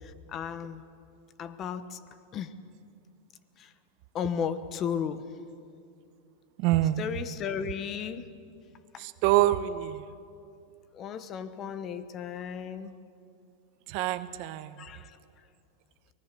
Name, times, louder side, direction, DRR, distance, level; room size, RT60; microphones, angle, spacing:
voice 1, 0.3-0.8 1.4-2.0 2.3-2.5 3.6-3.7 4.1-5.2 7.0-8.3 8.9-9.0 10.9-12.9 14.8-15.1, left 7 dB, 35° left, 13 dB, 1.1 m, -34 dB
voice 2, 6.6-7.0 9.0-10.0 13.9-14.9, right 15 dB, 55° right, 13 dB, 1.0 m, -26 dB
24.0 x 19.0 x 6.9 m, 2.5 s
hypercardioid pair, 120°, 0 cm